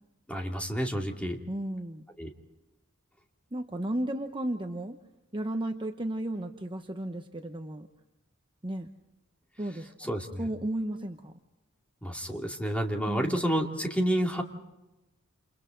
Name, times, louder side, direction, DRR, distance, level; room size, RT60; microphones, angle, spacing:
voice 1, 0.3-1.4 2.2-2.3 10.0-10.4 12.0-14.4, equal, 5° left, 1 dB, 2.5 m, -29 dB
voice 2, 1.5-2.0 3.5-5.0 5.3-7.9 8.6-8.9 9.6-10.1 10.4-11.3 13.1-13.4, right 1 dB, 25° right, 5 dB, 0.9 m, -34 dB
29.0 x 29.0 x 3.9 m, 1.0 s
head